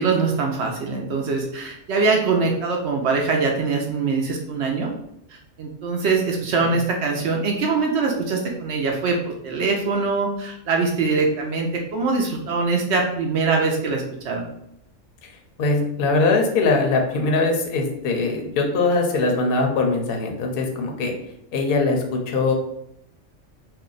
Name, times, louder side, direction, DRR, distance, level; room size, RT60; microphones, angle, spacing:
voice 1, 0.0-4.9 5.6-14.4, right 4 dB, 65° right, 1 dB, 0.7 m, -23 dB
voice 2, 15.6-21.1 21.5-22.5, left 3 dB, 55° left, 2 dB, 0.7 m, -21 dB
2.7 x 2.1 x 3.8 m, 0.78 s
omnidirectional pair, 1.4 m